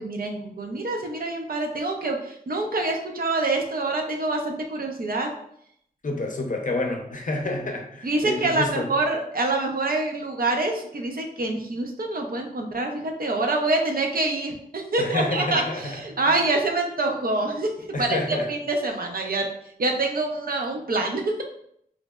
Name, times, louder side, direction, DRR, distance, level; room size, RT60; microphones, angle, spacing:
voice 1, 0.0-5.3 8.0-19.5 19.8-21.4, right 2 dB, 70° right, 2 dB, 0.5 m, -26 dB
voice 2, 6.0-8.9 15.0-16.0 17.9-18.5, left 2 dB, 55° left, 2 dB, 0.6 m, -28 dB
3.8 x 2.0 x 2.2 m, 0.70 s
wide cardioid pair, 70°, 16 cm